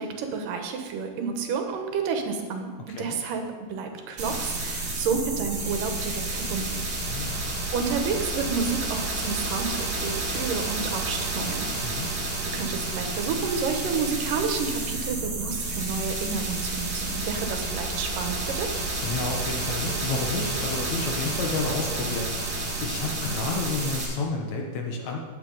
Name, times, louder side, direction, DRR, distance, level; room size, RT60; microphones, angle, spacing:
voice 1, 0.0-2.7 3.0-6.8 7.2-18.8, right 5 dB, 85° right, 5 dB, 2.8 m, -30 dB
sound 1, 4.2-24.1, right 2 dB, 40° right, 2.4 m, -30 dB
voice 2, 7.0-7.5 11.8-12.1 19.0-25.2, left 3 dB, 65° left, 1 dB, 2.5 m, -31 dB
17.5 x 7.5 x 4.0 m, 1.4 s
omnidirectional pair, 3.7 m